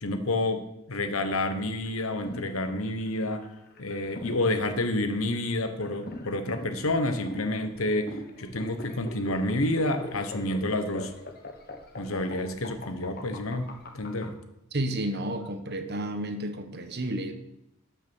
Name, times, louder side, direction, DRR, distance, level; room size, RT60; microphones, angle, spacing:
voice 1, 0.0-3.4 3.8-11.1 11.9-13.6 13.9-14.3, left 2 dB, 80° left, 8 dB, 1.2 m, -29 dB
sound 1, 1.8-14.3, left 2 dB, 50° left, 1.3 m, -41 dB
voice 2, 14.7-17.3, right 1 dB, 50° right, 8 dB, 1.1 m, -31 dB
12.5 x 6.1 x 6.1 m, 0.86 s
head